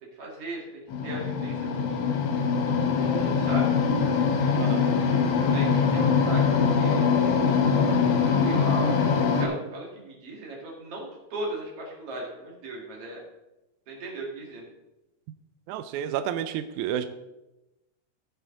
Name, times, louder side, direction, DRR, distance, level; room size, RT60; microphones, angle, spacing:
voice 1, 0.2-2.1 2.9-3.7 5.4-7.1 8.4-9.1 9.4-13.2 13.9-14.7, right 1 dB, 45° right, -1 dB, 2.8 m, -37 dB
sound 1, 0.9-9.5, left 5 dB, 60° left, 1.6 m, -23 dB
voice 2, 4.6-4.9 15.7-17.1, right 10 dB, 85° right, 10 dB, 1.7 m, -30 dB
14.5 x 5.8 x 3.8 m, 0.97 s
omnidirectional pair, 4.0 m